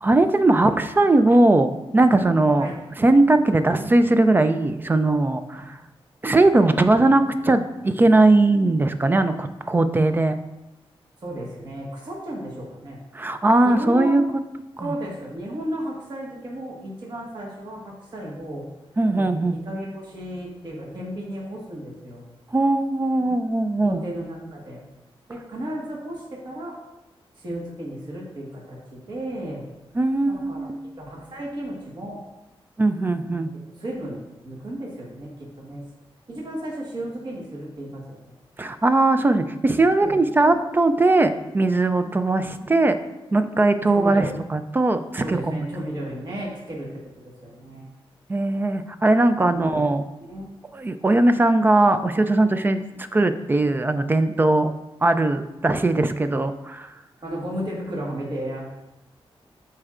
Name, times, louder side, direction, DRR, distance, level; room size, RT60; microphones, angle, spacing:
voice 1, 0.0-2.7 3.0-5.7 6.2-10.4 13.1-14.2 14.8-14.9 19.0-19.6 22.5-24.0 30.0-30.7 32.8-33.5 38.6-42.9 43.3-44.3 44.5-45.7 48.3-50.0 50.7-54.7 55.0-56.9, right 2 dB, 20° right, 9 dB, 0.3 m, -19 dB
voice 2, 11.2-13.0 13.6-14.2 14.8-18.7 19.1-22.3 23.2-23.3 23.8-24.8 25.3-26.8 27.4-29.7 30.3-30.7 31.0-32.2 33.2-33.4 33.8-35.8 36.3-38.2 40.0-40.6 43.9-44.3 45.2-47.9 49.5-49.9 50.2-50.5 57.2-58.7, right 1 dB, 50° right, -3 dB, 1.5 m, -34 dB
12.5 x 4.3 x 2.5 m, 0.96 s
wide cardioid pair, 160°, 10 cm